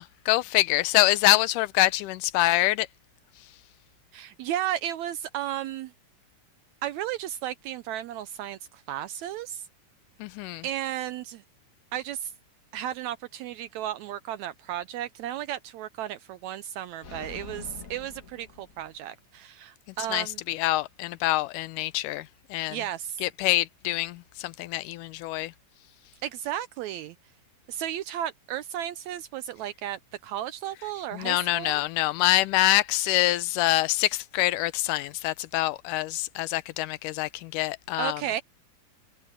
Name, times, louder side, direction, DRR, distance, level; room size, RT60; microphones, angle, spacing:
voice 1, 0.0-2.9 10.2-10.7 20.1-22.8 23.2-25.5 31.1-38.2, left 17 dB, 80° left, 2.2 m, -25 dB
voice 2, 4.1-5.9 6.8-9.6 10.6-11.4 11.9-12.3 12.7-20.4 22.7-23.2 26.2-27.2 27.7-31.8 38.0-38.4, right 11 dB, 80° right, 1.7 m, -34 dB
sound 1, 17.0-19.2, left 5 dB, 35° left, 1.6 m, -45 dB
omnidirectional pair, 3.7 m